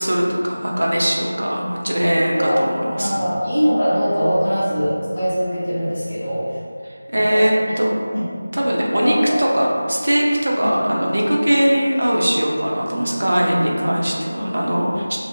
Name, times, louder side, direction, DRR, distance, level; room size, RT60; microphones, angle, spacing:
voice 1, 0.0-3.1 6.9-7.9 8.5-15.2, equal, 55° right, -3 dB, 0.4 m, -20 dB
voice 2, 3.0-6.6 7.1-7.7 8.0-8.2 9.0-9.4 10.6-10.7 12.9-13.7 14.5-14.9, equal, 25° left, -12 dB, 0.7 m, -22 dB
2.4 x 2.0 x 2.5 m, 2.1 s
figure-of-eight pair, 180°, 0 cm